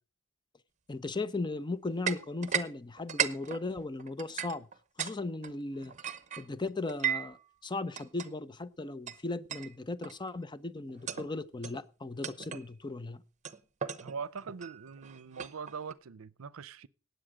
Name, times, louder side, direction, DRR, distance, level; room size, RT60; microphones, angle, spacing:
voice 1, 0.9-4.7 5.0-6.0 6.4-7.4 7.6-13.2, left 2 dB, 20° left, 0.6 m, -37 dB
sound 1, 2.1-2.7 3.0-5.2 5.4-7.4 8.0-8.3 9.1-9.2 9.5-9.7 10.0-10.3 10.9-11.3 11.6-11.8 12.2-12.7 13.5-15.9, right 8 dB, 35° right, 0.9 m, -36 dB
voice 2, 14.0-16.9, right 5 dB, 70° right, 0.6 m, -42 dB
17.5 x 8.0 x 4.9 m
head